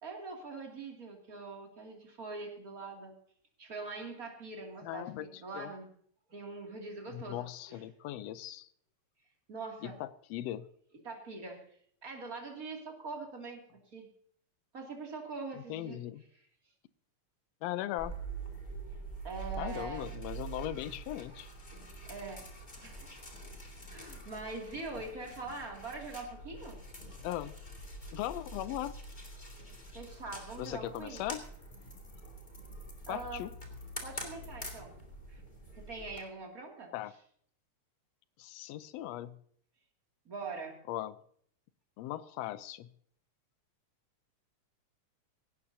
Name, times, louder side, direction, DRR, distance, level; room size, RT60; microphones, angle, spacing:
voice 1, 0.0-3.1 3.6-5.9 6.3-7.8 9.5-10.0 11.0-11.7 12.0-14.1 14.7-16.0 19.2-20.1 22.1-22.5 22.8-23.1 23.9-26.8 29.9-31.2 33.1-33.4 34.0-35.0 35.3-35.4 35.7-36.9 40.2-40.8, right 3 dB, 30° right, 0 dB, 2.7 m, -43 dB
voice 2, 4.8-5.3 5.5-5.7 7.1-8.7 9.8-10.7 15.7-16.2 17.6-18.2 19.6-21.5 27.2-27.5 28.1-28.9 30.6-31.4 33.1-33.5 36.9-37.1 38.4-39.4 40.9-41.2 42.0-42.9, left 13 dB, 75° left, 14 dB, 1.6 m, -38 dB
sound 1, 18.0-36.2, right 2 dB, 15° left, 2.1 m, -45 dB
18.0 x 16.5 x 2.8 m, 0.62 s
omnidirectional pair, 3.4 m